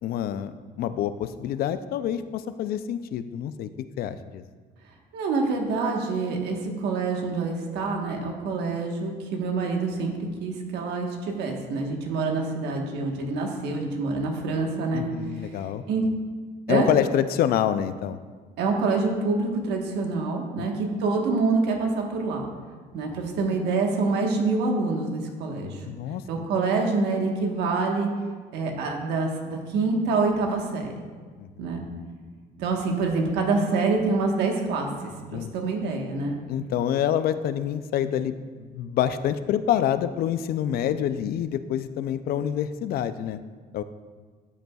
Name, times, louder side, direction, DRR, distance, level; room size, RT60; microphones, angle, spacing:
voice 1, 0.0-3.7 4.0-4.4 14.9-15.8 16.7-18.2 20.6-20.7 25.8-26.4 31.4-31.6 35.3-35.5 36.5-43.4 43.7-43.8, left 10 dB, 65° left, 12 dB, 0.4 m, -27 dB
voice 2, 5.1-15.0 15.4-15.5 15.9-16.1 16.7-16.9 18.6-22.5 22.9-25.8 26.3-28.1 28.5-30.9 31.6-31.8 32.6-36.4, right 3 dB, 80° right, 2 dB, 1.3 m, -26 dB
12.0 x 6.7 x 2.3 m, 1.5 s
cardioid pair, 110°, 17 cm